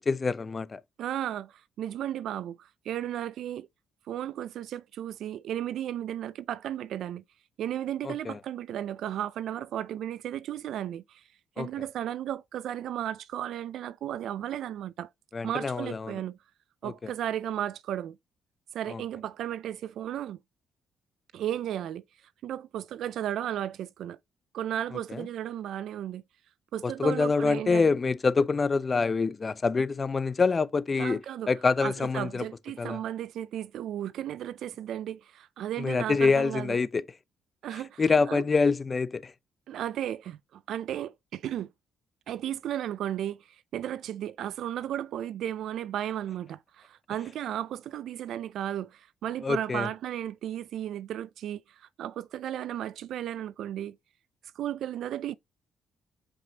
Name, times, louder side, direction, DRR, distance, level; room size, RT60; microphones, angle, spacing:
voice 1, 0.0-0.8 8.0-8.4 11.6-11.7 15.3-16.2 16.8-17.1 18.9-19.0 25.1-25.3 26.8-31.2 31.5-32.5 32.8-33.0 35.8-37.0 38.0-39.3 49.4-49.9, left 4 dB, 35° left, 0.7 m, -26 dB
voice 2, 1.0-3.7 4.1-7.2 7.6-11.2 11.6-15.1 15.4-16.4 16.8-18.2 18.7-20.4 21.3-22.0 22.4-24.2 24.5-26.2 26.7-27.9 31.0-31.5 31.8-36.8 37.6-38.4 39.7-41.7 42.3-54.0 54.6-55.4, right 11 dB, 75° right, 0.4 m, -34 dB
7.5 x 5.3 x 2.9 m
cardioid pair, 90°, 0 cm